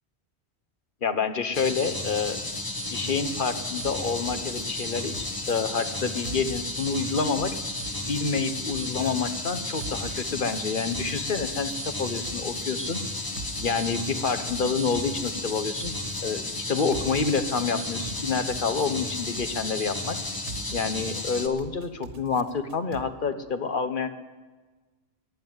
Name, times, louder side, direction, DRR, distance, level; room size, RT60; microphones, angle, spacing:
voice 1, 1.0-2.4 2.9-7.6 8.1-13.0 13.6-15.9 16.2-20.2 20.7-24.1, left 5 dB, 50° left, 10 dB, 1.2 m, -28 dB
sound 1, 1.5-21.5, left 2 dB, 20° left, 1.2 m, -33 dB
sound 2, 3.8-5.5 6.3-7.0 7.4-9.1 9.8-10.5 10.9-12.6 13.4-14.1 14.5-16.2 16.9-17.7 18.0-19.7 20.5-21.2 21.6-23.0, right 4 dB, 85° right, 1.5 m, -43 dB
15.0 x 10.5 x 9.2 m, 1.3 s
omnidirectional pair, 1.1 m